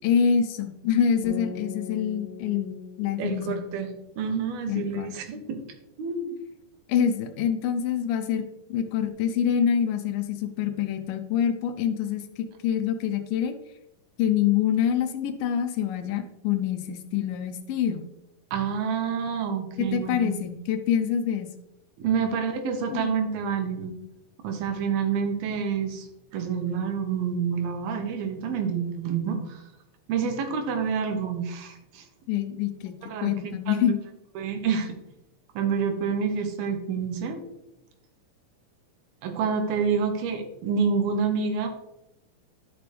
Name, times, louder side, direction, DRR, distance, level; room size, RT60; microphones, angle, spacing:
voice 1, 0.0-3.6 4.7-5.2 6.9-8.4 8.7-13.6 14.2-18.1 19.8-21.5 22.9-23.1 32.3-33.0 33.2-34.0, left 8 dB, 80° left, 7 dB, 2.3 m, -26 dB
sound 1, 1.2-4.4, left 4 dB, 50° left, 1.5 m, -41 dB
voice 2, 3.2-3.9 4.2-5.6 6.0-6.4 18.5-20.4 22.0-23.9 24.4-26.1 26.3-29.6 30.1-32.1 33.1-33.3 33.7-33.8 34.4-34.9 35.6-37.4 39.2-41.7, right 6 dB, 85° right, 5 dB, 3.0 m, -28 dB
11.0 x 6.1 x 3.4 m, 0.87 s
omnidirectional pair, 4.2 m